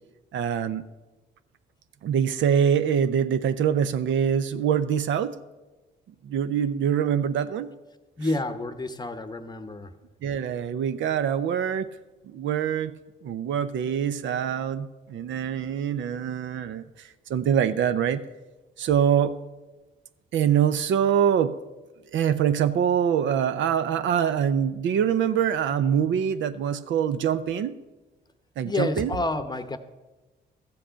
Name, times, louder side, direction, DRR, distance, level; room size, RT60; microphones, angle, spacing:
voice 1, 0.3-0.8 2.0-5.4 6.2-7.7 10.2-11.9 12.2-12.9 13.2-18.2 18.8-19.4 20.3-21.5 22.1-27.7 28.6-29.1, right 8 dB, 70° right, 12 dB, 0.6 m, -24 dB
voice 2, 8.2-9.9 28.6-29.8, left 2 dB, 20° left, 10 dB, 0.8 m, -29 dB
13.0 x 7.7 x 5.6 m, 1.1 s
cardioid pair, 90°, 20 cm